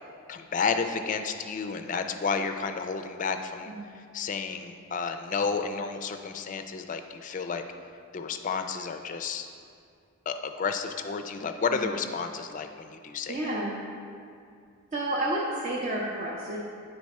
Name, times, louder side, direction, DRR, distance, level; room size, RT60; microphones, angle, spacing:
voice 1, 0.3-3.7 4.1-7.6 8.1-9.5 10.3-13.5, left 5 dB, 40° left, 7 dB, 0.4 m, -31 dB
voice 2, 13.3-13.8 14.9-16.6, right 1 dB, 35° right, -5 dB, 0.7 m, -30 dB
9.0 x 4.7 x 4.2 m, 2.3 s
head